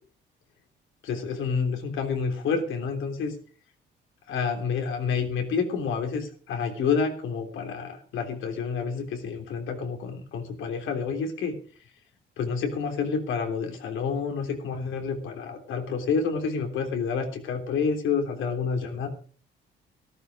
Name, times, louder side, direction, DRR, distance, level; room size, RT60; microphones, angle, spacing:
voice 1, 1.0-3.3 4.3-11.6 12.4-19.1, left 5 dB, 80° left, 5 dB, 3.3 m, -29 dB
14.0 x 13.0 x 5.0 m, 0.41 s
cardioid pair, 90°, 20 cm